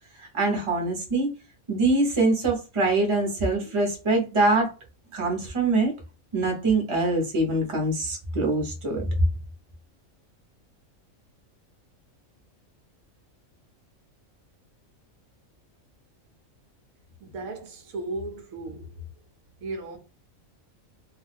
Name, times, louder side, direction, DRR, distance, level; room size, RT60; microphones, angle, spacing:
voice 1, 0.2-1.3 1.7-4.7 5.1-5.9 6.3-9.1, right 2 dB, 25° right, 0.8 m, -24 dB
voice 2, 17.2-18.9 19.6-20.0, right 2 dB, 85° right, 1.1 m, -35 dB
2.5 x 2.3 x 3.3 m
omnidirectional pair, 1.4 m